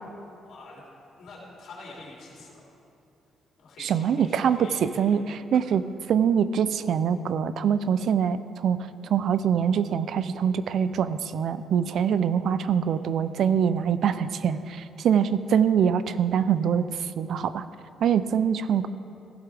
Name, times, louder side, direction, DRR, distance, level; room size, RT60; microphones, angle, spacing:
voice 1, 0.4-0.8 1.1-2.6 3.6-5.2, left 2 dB, 75° left, -4 dB, 2.8 m, -45 dB
voice 2, 3.8-5.8 6.1-8.8 9.0-17.6 18.0-18.9, right 8 dB, 70° right, 13 dB, 0.5 m, -24 dB
15.5 x 11.5 x 3.4 m, 2.7 s
cardioid pair, 90°, 0 cm